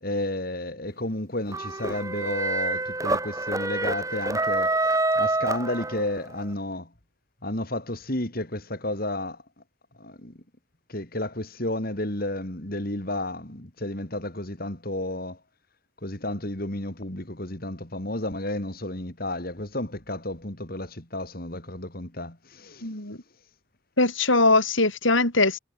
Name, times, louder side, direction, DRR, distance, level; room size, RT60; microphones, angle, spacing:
voice 1, 0.0-6.9 7.4-9.4 10.0-10.3 10.9-15.4 16.0-22.9, left 1 dB, 45° left, 3.6 m, -32 dB
sound 1, 1.5-6.3, right 2 dB, 15° right, 2.5 m, -27 dB
voice 2, 22.8-23.2 24.0-25.6, left 3 dB, 70° left, 5.8 m, -21 dB
head